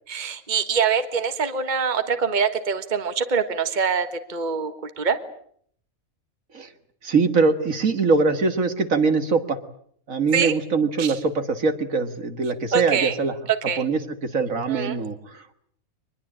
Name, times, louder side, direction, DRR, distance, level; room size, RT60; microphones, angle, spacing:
voice 1, 0.1-5.2 10.3-10.5 11.0-11.2 12.7-13.2 13.5-13.9 14.7-15.0, right 6 dB, 35° right, 9 dB, 1.6 m, -24 dB
voice 2, 7.0-9.6 10.1-13.3 13.8-15.5, right 4 dB, 70° right, 9 dB, 2.2 m, -22 dB
24.0 x 21.0 x 8.7 m, 0.65 s
omnidirectional pair, 1.5 m